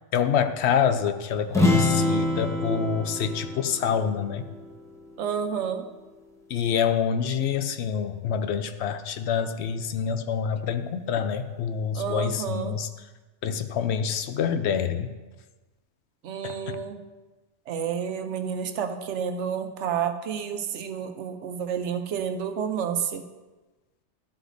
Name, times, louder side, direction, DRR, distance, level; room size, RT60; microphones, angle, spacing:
voice 1, 0.1-4.5 6.5-12.9 13.4-15.1 16.4-16.8, left 7 dB, 70° left, 9 dB, 0.8 m, -26 dB
sound 1, 1.5-5.2, left 2 dB, 5° left, 0.7 m, -26 dB
voice 2, 5.2-5.9 11.9-12.8 16.2-17.0 17.7-23.2, right 7 dB, 75° right, 7 dB, 1.0 m, -30 dB
13.0 x 8.1 x 2.6 m, 1.2 s
omnidirectional pair, 1.2 m